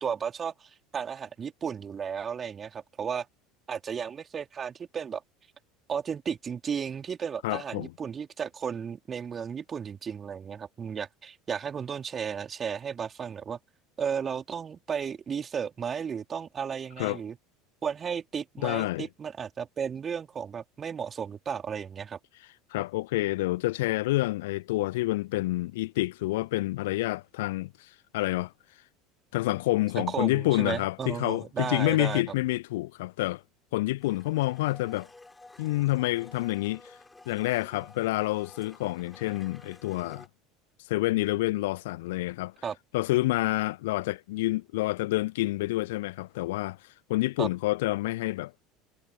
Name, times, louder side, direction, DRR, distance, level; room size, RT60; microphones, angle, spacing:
voice 1, 0.0-3.3 3.7-5.2 5.9-13.6 14.0-17.4 17.8-22.2 29.9-32.2 42.6-42.8 47.4-47.5, right 7 dB, 30° right, 3.3 m, -34 dB
voice 2, 7.4-7.9 17.0-17.2 18.6-19.1 22.7-28.5 29.3-33.4 33.7-35.1 35.6-37.0 37.3-40.3 40.9-42.5 42.9-46.8 47.1-48.5, left 19 dB, 60° left, 0.4 m, -28 dB
Domestic sounds home sounds, 34.0-40.3, left 2 dB, 10° left, 7.2 m, -52 dB
figure-of-eight pair, 70°, 0 cm